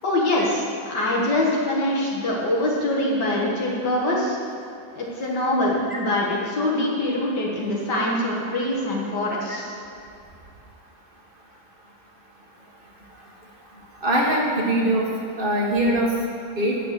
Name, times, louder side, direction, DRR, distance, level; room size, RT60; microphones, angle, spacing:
voice 1, 0.0-4.4 4.9-9.8, left 1 dB, 70° left, -4 dB, 2.2 m, -24 dB
voice 2, 14.0-15.0 15.4-16.1 16.6-16.8, right 1 dB, 30° right, -1 dB, 1.5 m, -21 dB
9.8 x 6.7 x 7.5 m, 2.5 s
omnidirectional pair, 1.9 m